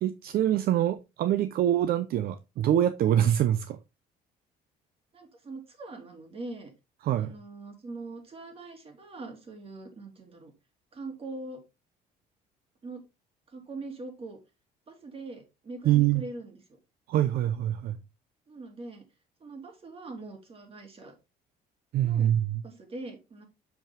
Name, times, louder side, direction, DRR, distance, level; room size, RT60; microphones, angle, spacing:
voice 1, 0.0-3.8 7.0-7.3 15.8-16.2 17.1-18.0 21.9-22.6, right 11 dB, 65° right, 0.6 m, -25 dB
voice 2, 5.1-6.7 7.2-10.5 10.9-11.6 12.8-13.0 13.5-14.4 14.9-16.6 18.5-19.0 19.4-21.1 22.0-22.3 22.6-23.4, right 2 dB, 35° right, 2.8 m, -42 dB
7.1 x 5.4 x 3.6 m
cardioid pair, 110°, 17 cm